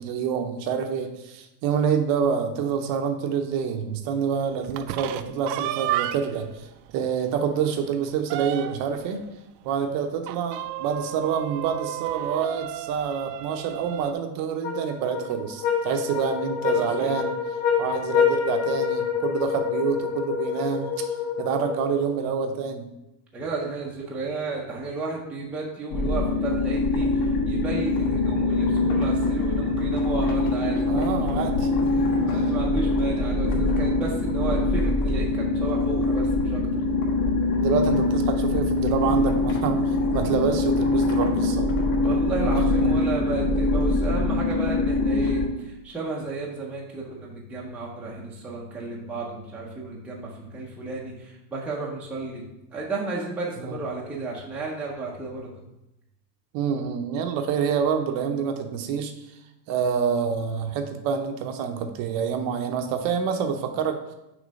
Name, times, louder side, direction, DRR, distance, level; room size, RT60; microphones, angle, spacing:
voice 1, 0.0-6.7 6.9-9.2 9.6-17.3 17.8-21.1 21.4-22.9 30.9-31.7 37.6-41.7 42.8-42.9 53.6-53.8 56.5-59.1 59.7-64.0, right 7 dB, 45° right, 6 dB, 0.6 m, -27 dB
sound 1, 4.6-6.4 6.9-7.0 7.3-7.4 7.8-9.0 10.2-14.1, right 14 dB, 90° right, 0.5 m, -32 dB
sound 2, 14.6-22.2, left 7 dB, 40° left, 2.2 m, -27 dB
voice 2, 16.7-17.1 23.3-31.5 32.3-36.6 42.0-52.4 52.7-55.5, right 3 dB, 5° right, -4 dB, 0.5 m, -33 dB
sound 3, 25.9-45.5, left 2 dB, 60° left, 1.6 m, -23 dB
6.3 x 3.3 x 5.1 m, 0.89 s
supercardioid pair, 155°, 49 cm